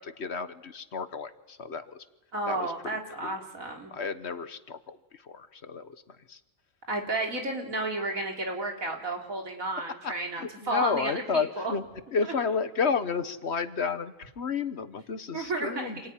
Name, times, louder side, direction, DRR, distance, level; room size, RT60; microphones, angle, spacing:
voice 1, 0.0-2.0 2.5-2.7 3.2-3.4 3.9-5.0 5.2-5.9 6.3-6.4 10.0-10.1 10.4-11.8 12.1-16.0, left 5 dB, 55° left, 12 dB, 1.4 m, -31 dB
voice 2, 2.3-3.9 6.9-11.7 12.2-12.3 15.3-15.9, right 2 dB, 85° right, 2 dB, 3.9 m, -32 dB
27.0 x 19.0 x 10.0 m, 0.98 s
omnidirectional pair, 1.4 m